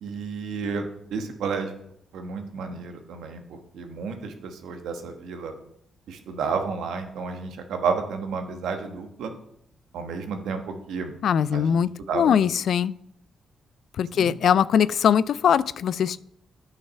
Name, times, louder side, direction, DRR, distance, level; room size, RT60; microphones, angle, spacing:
voice 1, 0.0-0.9 1.1-1.7 2.1-3.4 3.7-5.5 6.1-9.3 9.9-11.1 11.5-11.8 12.1-12.4 14.1-14.4, right 5 dB, 80° right, 1.2 m, -31 dB
voice 2, 11.2-11.9 12.1-12.9 14.0-16.2, left 8 dB, 70° left, 0.3 m, -21 dB
9.0 x 5.6 x 5.7 m
supercardioid pair, 50°, 0 cm